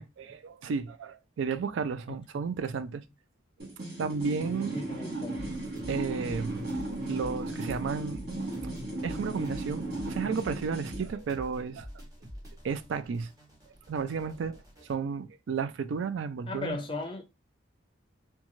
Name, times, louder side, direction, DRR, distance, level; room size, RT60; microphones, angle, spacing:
voice 1, 0.0-3.0 4.0-4.8 5.9-6.7 7.1-8.2 9.0-11.9 12.6-13.3 13.9-16.8, right 5 dB, 75° right, 0.3 m, -33 dB
voice 2, 2.1-2.5 4.7-5.5 16.5-17.2, left 3 dB, 25° left, 0.5 m, -37 dB
sound 1, 3.6-11.1, right 1 dB, 55° right, 1.0 m, -36 dB
sound 2, 5.3-14.9, equal, 20° right, 0.9 m, -46 dB
2.5 x 2.3 x 3.0 m
head